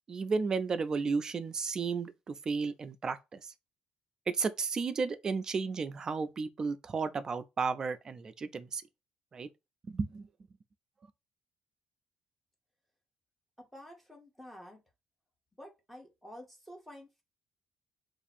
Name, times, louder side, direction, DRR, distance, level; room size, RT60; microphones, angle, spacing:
voice 1, 0.1-3.5 4.3-8.8 9.3-9.5 9.9-10.3, right 4 dB, 25° right, 0.3 m, -33 dB
voice 2, 13.7-14.8 15.6-17.2, equal, ahead, 0.8 m, -50 dB
2.7 x 2.5 x 4.1 m
cardioid pair, 175°, 3 cm